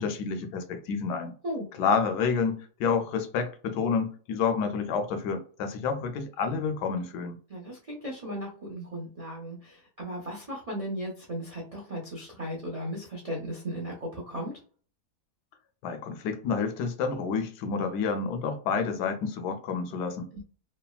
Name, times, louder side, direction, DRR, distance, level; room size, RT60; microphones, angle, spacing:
voice 1, 0.0-1.3 1.8-7.4 15.8-20.3, left 5 dB, 85° left, 1.2 m, -29 dB
voice 2, 7.5-14.5 20.3-20.4, equal, 55° right, 0.4 m, -36 dB
3.3 x 2.1 x 2.2 m
omnidirectional pair, 1.7 m